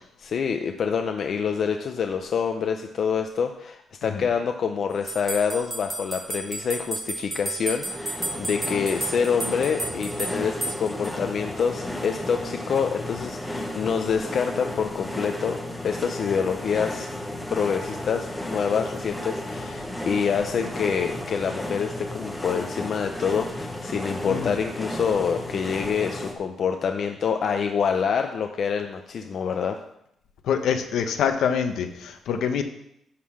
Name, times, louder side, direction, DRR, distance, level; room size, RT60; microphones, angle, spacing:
voice 1, 0.2-15.6 15.8-29.8, left 6 dB, 45° left, 5 dB, 0.5 m, -26 dB
sound 1, 5.1-11.1, right 2 dB, 10° right, 0.5 m, -33 dB
sound 2, 7.9-26.3, left 1 dB, 5° left, 1.0 m, -33 dB
voice 2, 30.4-32.6, left 7 dB, 65° left, 7 dB, 0.9 m, -25 dB
11.0 x 3.8 x 7.1 m, 0.76 s
cardioid pair, 175°, 0 cm